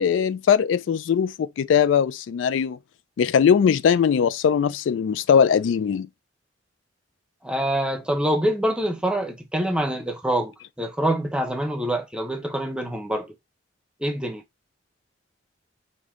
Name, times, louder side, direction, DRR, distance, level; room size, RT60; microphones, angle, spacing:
voice 1, 0.0-2.8 3.2-6.1, left 7 dB, 80° left, 0.3 m, -20 dB
voice 2, 7.4-13.3 14.0-14.4, right 1 dB, 5° right, 0.8 m, -25 dB
5.1 x 2.7 x 3.7 m
head